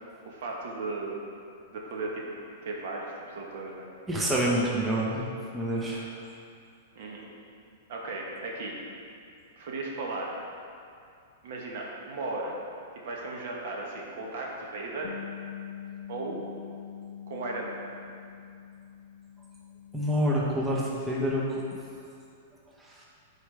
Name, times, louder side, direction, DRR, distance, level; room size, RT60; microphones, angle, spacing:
voice 1, 0.2-1.2 1.7-2.3 2.6-3.9 6.9-7.3 7.9-8.8 9.6-10.4 11.4-12.6 13.0-15.1 16.1-16.4 17.3-17.8, right 2 dB, 60° right, -2 dB, 1.2 m, -36 dB
voice 2, 4.1-5.2 5.5-6.1 19.9-21.6 22.8-23.0, equal, 10° right, -4 dB, 0.9 m, -27 dB
Bass guitar, 15.0-21.3, left 9 dB, 80° left, 0.4 m, -44 dB
7.9 x 4.8 x 3.3 m, 2.4 s
hypercardioid pair, 145°, 0 cm